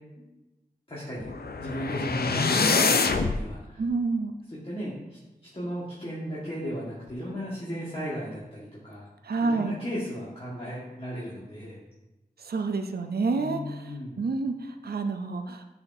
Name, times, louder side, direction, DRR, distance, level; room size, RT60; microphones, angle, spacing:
voice 1, 0.9-3.8 4.5-9.1 9.4-11.8 13.3-14.2, equal, 35° left, -9 dB, 1.6 m, -35 dB
sound 1, 1.2-3.4, left 4 dB, 75° left, 0.4 m, -25 dB
voice 2, 3.8-4.3 9.2-9.7 12.4-15.6, right 3 dB, 80° right, 6 dB, 0.4 m, -29 dB
9.6 x 4.2 x 2.7 m, 1.0 s
wide cardioid pair, 45°, 16 cm